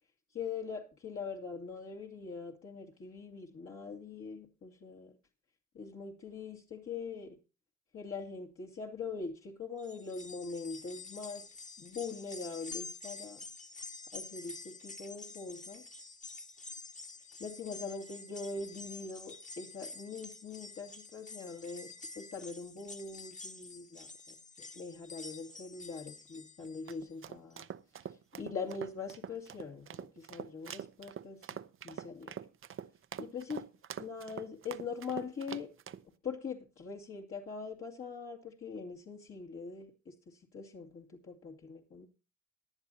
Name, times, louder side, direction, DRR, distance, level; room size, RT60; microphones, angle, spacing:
voice 1, 0.3-5.2 5.7-7.4 7.9-11.5 11.8-13.4 14.1-15.8 17.4-27.7 28.0-32.4 33.2-33.6 34.0-35.7 36.2-42.1, left 5 dB, 45° left, -1 dB, 2.3 m, -42 dB
sound 1, 9.8-27.1 27.5-27.6 28.7-28.8, left 3 dB, 25° left, 1.7 m, -48 dB
sound 2, 26.6-36.0, right 8 dB, 45° right, 0.7 m, -45 dB
18.0 x 11.0 x 2.7 m, 0.31 s
cardioid pair, 90°, 30 cm